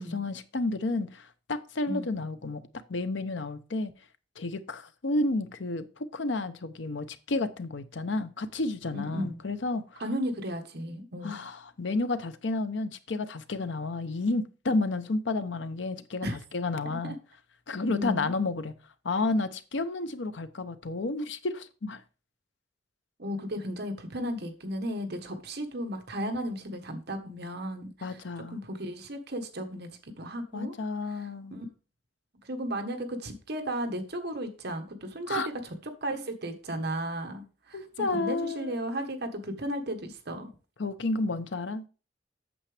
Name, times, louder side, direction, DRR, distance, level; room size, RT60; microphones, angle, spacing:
voice 1, 0.0-3.9 4.4-10.0 11.2-17.2 17.7-18.8 19.0-22.0 28.0-28.6 30.5-31.6 35.3-35.5 37.7-38.8 40.8-41.9, left 2 dB, 70° left, 0.7 m, -31 dB
voice 2, 8.9-9.4 10.0-11.4 16.2-16.4 16.8-17.1 17.8-18.3 23.2-28.2 28.5-30.7 31.1-31.7 32.4-35.7 36.0-37.9 38.1-40.5, equal, 55° right, 1.3 m, -35 dB
8.6 x 7.0 x 3.4 m
head